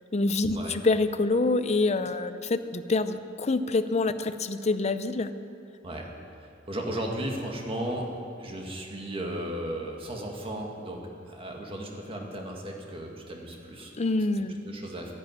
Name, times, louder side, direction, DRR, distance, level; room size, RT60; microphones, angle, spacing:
voice 1, 0.1-5.3 14.0-14.6, left 3 dB, 35° left, 11 dB, 0.6 m, -26 dB
voice 2, 5.8-8.1 8.4-13.9 14.6-15.1, right 1 dB, 30° right, 0 dB, 2.0 m, -35 dB
11.5 x 11.0 x 9.4 m, 2.6 s
head